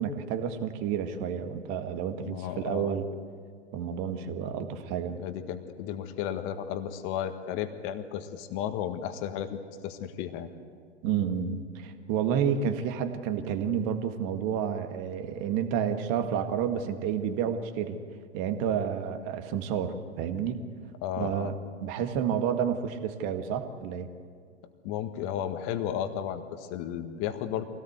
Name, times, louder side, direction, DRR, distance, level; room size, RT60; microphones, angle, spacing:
voice 1, 0.0-3.1 3.7-5.2 11.0-18.0 18.3-20.6 21.2-21.5 21.8-24.1, right 8 dB, 40° right, 7 dB, 1.9 m, -30 dB
voice 2, 2.3-2.9 5.2-10.5 21.0-21.5 24.8-27.6, left 10 dB, 35° left, 8 dB, 1.7 m, -34 dB
24.0 x 17.5 x 8.1 m, 2.1 s
hypercardioid pair, 115°, 35 cm